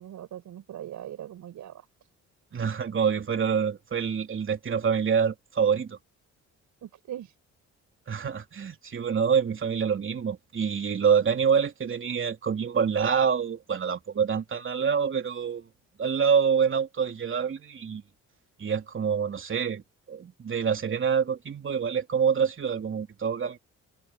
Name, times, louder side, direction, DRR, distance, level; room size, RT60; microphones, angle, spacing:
voice 1, 0.0-1.9 6.8-7.3, right 11 dB, 75° right, 6.5 m, -40 dB
voice 2, 2.5-6.0 8.1-15.6 16.0-18.0 18.6-19.8 20.1-23.6, right 7 dB, 40° right, 3.2 m, -26 dB
cardioid pair, 90°, 30 cm